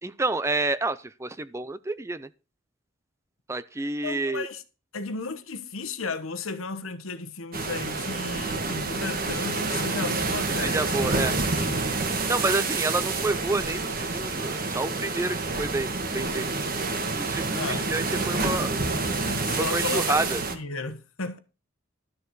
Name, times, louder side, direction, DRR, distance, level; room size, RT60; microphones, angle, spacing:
voice 1, 0.0-2.3 3.5-4.5 10.6-11.3 12.3-16.5 17.1-18.7 19.6-20.4, right 2 dB, 15° right, 0.4 m, -29 dB
voice 2, 4.0-4.6 4.9-11.2 11.5-11.9 17.5-17.9 18.5-18.6 19.2-20.2 20.5-21.4, left 3 dB, 75° left, 1.3 m, -34 dB
sound 1, 7.5-20.6, right 3 dB, 45° right, 1.5 m, -28 dB
12.5 x 6.8 x 4.8 m
head